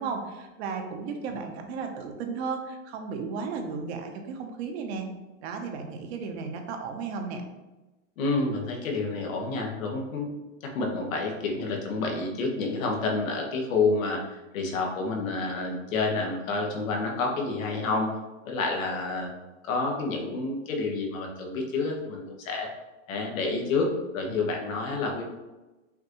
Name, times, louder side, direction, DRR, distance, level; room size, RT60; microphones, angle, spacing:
voice 1, 0.0-5.1 5.4-7.4, right 5 dB, 55° right, 4 dB, 0.8 m, -34 dB
voice 2, 8.2-10.3 10.6-18.1 18.4-19.3 19.6-22.7 23.1-25.3, left 3 dB, 85° left, 1 dB, 1.3 m, -29 dB
5.8 x 2.6 x 3.0 m, 1.1 s
supercardioid pair, 145°, 39 cm